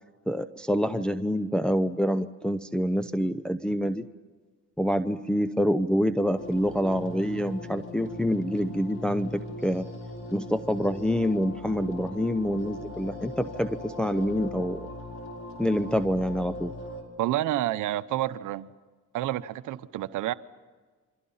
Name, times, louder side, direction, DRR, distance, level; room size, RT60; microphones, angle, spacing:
voice 1, 0.3-4.0 4.8-9.9 10.3-14.8 15.6-16.7, equal, 5° left, 0.8 m, -26 dB
sound 1, 6.4-17.0, left 2 dB, 45° left, 6.1 m, -39 dB
voice 2, 17.2-18.7 19.1-20.3, right 14 dB, 85° right, 0.8 m, -29 dB
28.5 x 24.5 x 5.6 m
cardioid pair, 90°, 30 cm